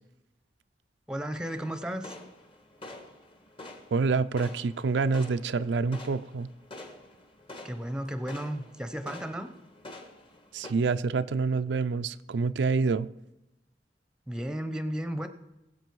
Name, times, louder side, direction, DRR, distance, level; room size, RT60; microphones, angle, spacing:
voice 1, 1.1-2.1 7.6-9.5 14.3-15.3, equal, 5° right, 9 dB, 0.8 m, -34 dB
sound 1, 1.5-10.7, left 2 dB, 30° left, 1.4 m, -47 dB
voice 2, 3.9-6.5 10.5-13.1, right 4 dB, 80° right, 11 dB, 0.4 m, -27 dB
20.5 x 7.6 x 4.7 m, 0.94 s
head